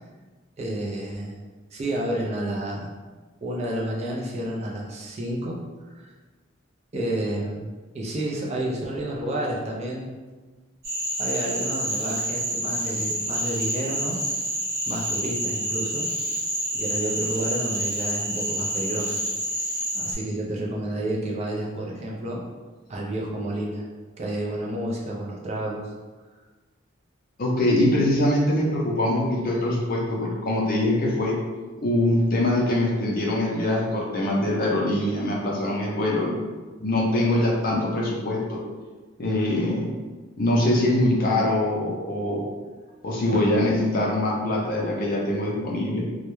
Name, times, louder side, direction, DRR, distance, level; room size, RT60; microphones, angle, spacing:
voice 1, 0.6-1.4 1.7-2.9 3.4-5.6 5.8-6.1 6.9-10.1 11.2-14.2 14.8-16.1 16.7-19.2 19.9-22.4 22.9-23.9 24.2-25.9, right 1 dB, 35° right, -2 dB, 0.4 m, -30 dB
Cricket / Frog, 10.8-20.1, right 1 dB, 50° right, 0.8 m, -28 dB
voice 2, 27.4-31.4 31.8-36.3 36.8-38.6 39.2-39.9 40.4-42.5 43.0-46.0, left 1 dB, 45° left, -2 dB, 0.5 m, -23 dB
2.2 x 2.1 x 3.0 m, 1.3 s
head